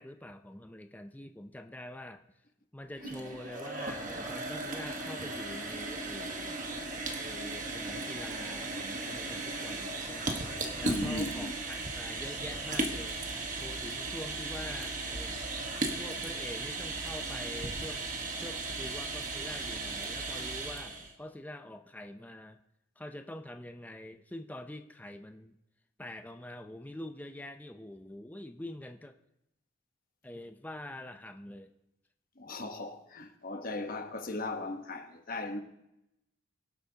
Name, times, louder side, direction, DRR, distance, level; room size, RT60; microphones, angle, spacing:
voice 1, 0.0-2.2 2.7-6.5 7.2-10.4 10.8-13.2 13.5-15.3 16.0-18.0 18.4-22.6 23.0-25.5 26.0-29.2 30.2-31.7, left 1 dB, 10° left, 0.5 m, -45 dB
sound 1, 2.9-21.1, right 2 dB, 40° right, 1.3 m, -36 dB
voice 2, 10.8-11.6 32.4-35.6, left 2 dB, 45° left, 1.1 m, -37 dB
23.0 x 8.2 x 2.8 m
head